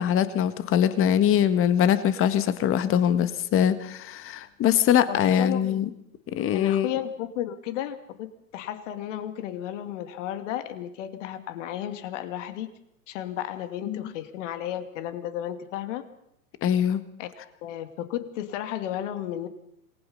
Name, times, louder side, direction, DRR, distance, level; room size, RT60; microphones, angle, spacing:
voice 1, 0.0-5.8 6.3-6.9 13.9-14.0 16.6-17.0, left 9 dB, 30° left, 12 dB, 1.7 m, -22 dB
voice 2, 5.1-5.9 6.5-8.3 8.5-12.7 13.1-16.0 17.2-17.3 17.6-19.5, left 11 dB, 55° left, 9 dB, 2.7 m, -33 dB
27.0 x 20.0 x 5.6 m, 0.72 s
hypercardioid pair, 110°, 44 cm